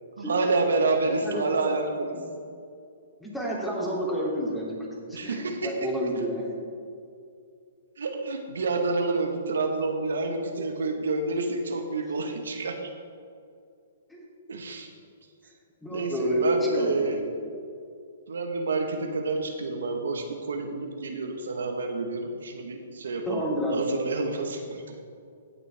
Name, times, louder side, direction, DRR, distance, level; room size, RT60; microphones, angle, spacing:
voice 1, 0.2-2.2 5.1-5.9 8.0-12.9 14.5-14.9 15.9-17.3 18.3-25.0, right 3 dB, 80° right, 4 dB, 1.2 m, -29 dB
voice 2, 1.0-1.4 3.2-6.5 14.1-14.2 15.8-16.5 16.8-17.2 23.3-23.8, equal, 5° left, -4 dB, 2.7 m, -30 dB
17.0 x 6.7 x 3.4 m, 2.4 s
hypercardioid pair, 135°, 0 cm